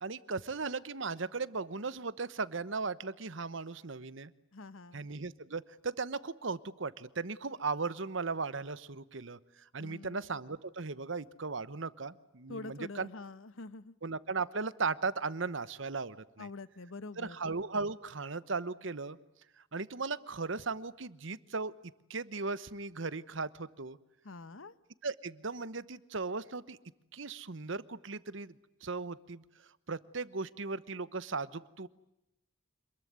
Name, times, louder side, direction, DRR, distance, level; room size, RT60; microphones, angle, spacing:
voice 1, 0.0-4.3 4.9-9.4 9.7-13.1 14.0-16.5 17.2-19.2 19.7-21.7 22.1-24.0 25.0-26.8 27.1-28.5 28.8-29.4 29.9-31.9, right 4 dB, 65° right, 16 dB, 1.0 m, -37 dB
voice 2, 4.5-5.1 9.8-10.3 12.5-13.9 16.4-17.4 24.2-24.7, left 3 dB, 75° left, 16 dB, 1.1 m, -46 dB
26.5 x 21.5 x 9.5 m, 0.91 s
head